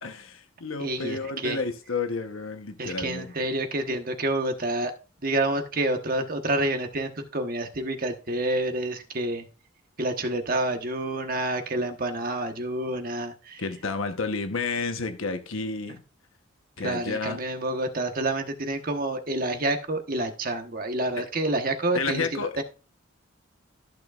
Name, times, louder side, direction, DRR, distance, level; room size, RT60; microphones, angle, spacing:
voice 1, 0.0-3.3 13.6-16.0 16.8-17.4 21.9-22.6, left 4 dB, 90° left, 1.1 m, -31 dB
voice 2, 0.8-1.6 2.8-4.9 5.2-9.4 10.0-13.6 16.8-22.6, right 2 dB, 45° right, 1.2 m, -28 dB
14.0 x 6.2 x 2.5 m
head